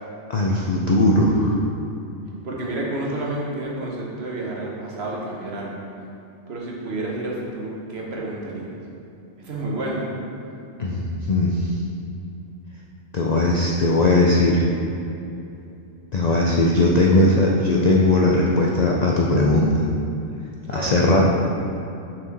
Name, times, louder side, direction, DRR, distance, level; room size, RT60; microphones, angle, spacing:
voice 1, 0.3-1.6 10.8-11.7 13.1-14.6 16.1-19.8 20.7-21.3, left 2 dB, 60° left, -2 dB, 0.4 m, -19 dB
voice 2, 2.4-5.8 6.5-8.7 9.4-10.1 20.7-20.9, right 2 dB, 55° right, -3 dB, 1.2 m, -30 dB
6.0 x 4.5 x 4.0 m, 2.7 s
omnidirectional pair, 1.3 m